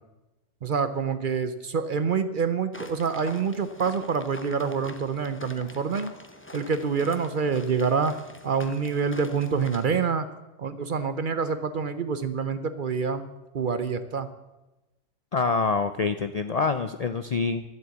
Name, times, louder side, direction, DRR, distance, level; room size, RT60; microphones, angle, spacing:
voice 1, 0.6-6.1 6.5-8.2 8.4-10.3 10.6-13.3 13.5-14.3, right 5 dB, 50° right, 11 dB, 0.8 m, -26 dB
sound 1, 2.7-9.9, left 1 dB, 10° left, 0.7 m, -45 dB
voice 2, 15.3-17.6, left 4 dB, 50° left, 10 dB, 0.4 m, -26 dB
12.5 x 7.7 x 8.2 m, 1.0 s
omnidirectional pair, 1.3 m